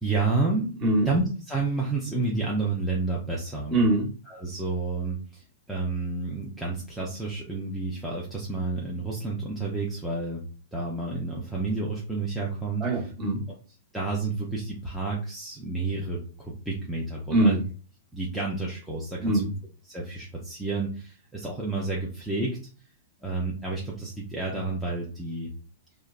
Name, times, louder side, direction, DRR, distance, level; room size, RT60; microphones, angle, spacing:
voice 1, 0.0-0.8 1.1-3.8 4.3-10.4 10.7-12.9 13.9-17.6 18.1-19.5 19.9-22.6 23.2-25.5, right 3 dB, ahead, -6 dB, 0.5 m, -30 dB
voice 2, 3.7-4.1 12.8-13.5 17.3-17.6 19.2-19.5, right 2 dB, 25° right, -2 dB, 0.9 m, -23 dB
3.2 x 2.0 x 2.3 m, 0.38 s
hypercardioid pair, 160°, 0 cm